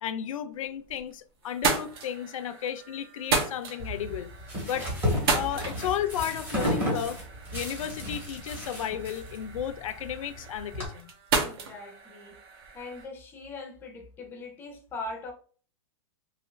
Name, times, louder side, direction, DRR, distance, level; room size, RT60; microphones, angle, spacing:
voice 1, 0.0-4.3 4.7-4.9 5.3-7.2 7.5-11.1, left 10 dB, 85° left, 0.4 m, -33 dB
sound 1, 0.6-1.1 1.4-13.0, right 4 dB, 50° right, 0.8 m, -34 dB
sound 2, 3.8-10.9, equal, 10° right, 0.9 m, -33 dB
voice 2, 11.4-12.4 12.7-15.3, left 2 dB, 10° left, 0.5 m, -41 dB
2.7 x 2.4 x 3.1 m
supercardioid pair, 160°, 17 cm